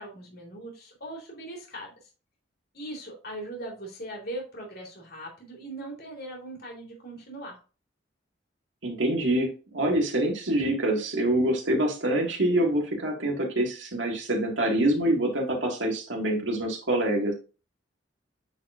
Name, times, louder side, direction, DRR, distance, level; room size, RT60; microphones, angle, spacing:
voice 1, 0.0-1.9 2.7-7.6, right 1 dB, 55° left, 0 dB, 2.7 m, -40 dB
voice 2, 8.8-17.3, right 1 dB, 75° right, 1 dB, 2.0 m, -25 dB
9.1 x 4.2 x 2.5 m, 0.33 s
head